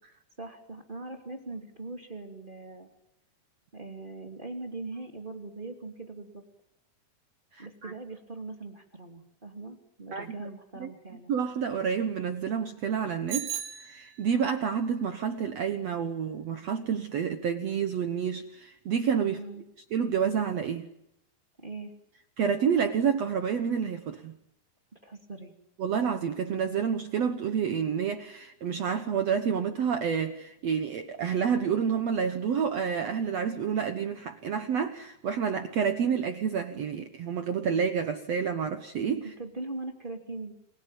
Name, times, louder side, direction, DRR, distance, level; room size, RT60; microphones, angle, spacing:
voice 1, 0.4-2.9 3.7-6.4 7.6-11.3 19.2-19.6 21.6-21.9 25.0-25.5 39.4-40.5, right 3 dB, 15° right, 4 dB, 2.1 m, -41 dB
voice 2, 7.5-7.9 10.1-10.5 10.8-10.9 11.3-13.5 13.8-19.4 19.9-20.9 22.4-24.3 25.8-39.3, right 7 dB, 80° right, 8 dB, 1.4 m, -29 dB
Bicycle bell, 13.3-14.5, right 10 dB, 60° right, 4.1 m, -37 dB
29.0 x 21.0 x 9.1 m, 0.81 s
omnidirectional pair, 4.8 m